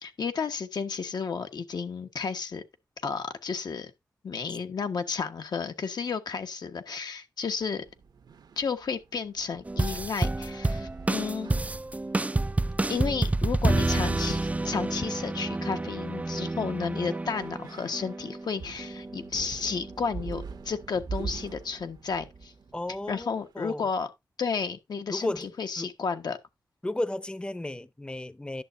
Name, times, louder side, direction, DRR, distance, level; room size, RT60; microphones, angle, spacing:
voice 1, 0.0-2.6 3.0-3.9 4.2-7.8 8.6-11.5 12.9-22.5 23.1-24.1 24.4-26.4, left 5 dB, 75° left, 1.3 m, -32 dB
sound 1, 7.8-23.5, right 5 dB, 85° right, 1.2 m, -45 dB
sound 2, 9.7-18.5 18.8-19.3 19.6-20.1 20.5-20.6, right 2 dB, 20° right, 0.4 m, -29 dB
voice 2, 22.7-23.8 25.1-25.9 26.8-28.6, left 1 dB, 15° left, 0.7 m, -34 dB
11.0 x 6.7 x 2.6 m
cardioid pair, 40°, 7 cm